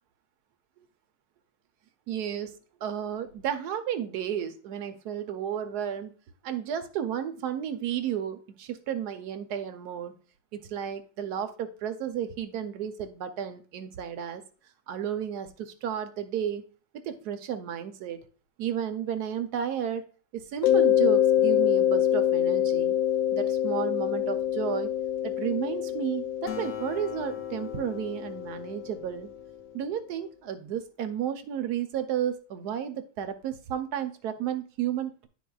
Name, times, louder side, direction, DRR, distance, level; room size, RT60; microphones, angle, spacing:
voice 1, 2.1-6.1 6.4-10.2 10.5-14.4 14.9-16.6 17.0-18.2 18.6-20.0 20.3-22.9 23.3-24.9 25.2-29.3 29.7-35.3, right 9 dB, 65° right, 9 dB, 1.1 m, -32 dB
Mallet percussion, 20.6-29.2, left 11 dB, 70° left, 1.0 m, -26 dB
Acoustic guitar, 26.5-30.2, left 7 dB, 90° left, 0.6 m, -44 dB
11.0 x 4.2 x 2.3 m, 0.39 s
omnidirectional pair, 2.1 m